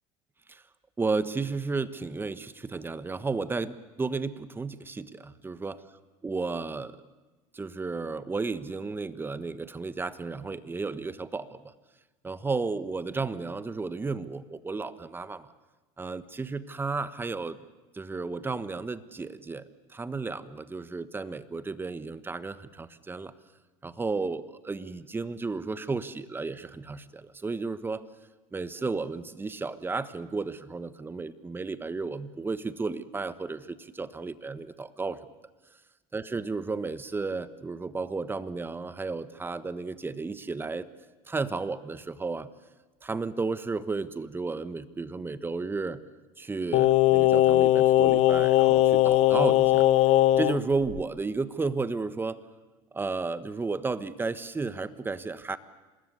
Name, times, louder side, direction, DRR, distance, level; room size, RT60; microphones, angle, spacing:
voice 1, 1.0-5.8 6.2-7.0 7.5-11.7 12.2-15.5 16.0-17.6 17.9-23.3 23.8-28.0 28.5-35.2 36.1-40.9 41.3-42.5 43.0-46.0 46.4-49.9 50.4-52.4 52.9-55.6, right 4 dB, 15° right, 14 dB, 1.4 m, -33 dB
Singing, 46.7-50.6 50.9-51.0, left 14 dB, 55° left, 1.0 m, -20 dB
26.5 x 20.5 x 9.8 m, 1.2 s
supercardioid pair, 100°, 13 cm